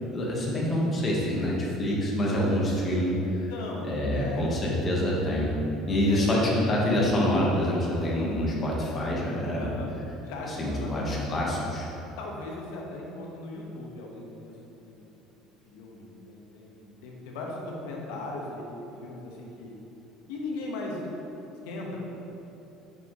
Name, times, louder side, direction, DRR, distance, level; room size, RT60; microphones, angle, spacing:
voice 1, 0.1-3.1 3.8-5.6 5.9-9.7 10.5-11.9, left 1 dB, 25° left, -4 dB, 1.2 m, -26 dB
voice 2, 3.5-4.4 6.1-6.5 9.6-9.9 10.2-11.1 12.2-15.1 15.7-19.7 20.3-21.1 21.6-22.0, left 2 dB, 85° left, -1 dB, 1.0 m, -38 dB
5.9 x 5.7 x 3.1 m, 3.0 s
cardioid pair, 145°, 0 cm